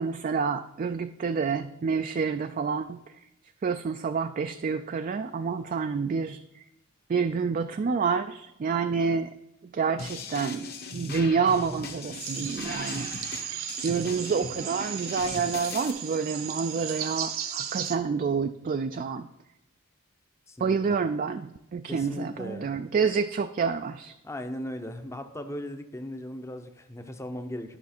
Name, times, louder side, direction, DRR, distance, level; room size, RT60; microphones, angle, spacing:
voice 1, 0.0-3.0 3.6-6.6 7.1-9.3 9.7-13.2 13.8-19.3 20.6-24.1, right 5 dB, 40° right, 8 dB, 0.3 m, -28 dB
sound 1, 10.0-15.9, left 4 dB, 45° left, 1.2 m, -39 dB
sound 2, 12.2-18.0, right 9 dB, 70° right, 0.9 m, -36 dB
voice 2, 20.5-21.0 21.8-22.7 24.2-27.8, left 1 dB, 15° left, 7 dB, 0.7 m, -38 dB
11.5 x 5.9 x 4.3 m, 0.88 s
head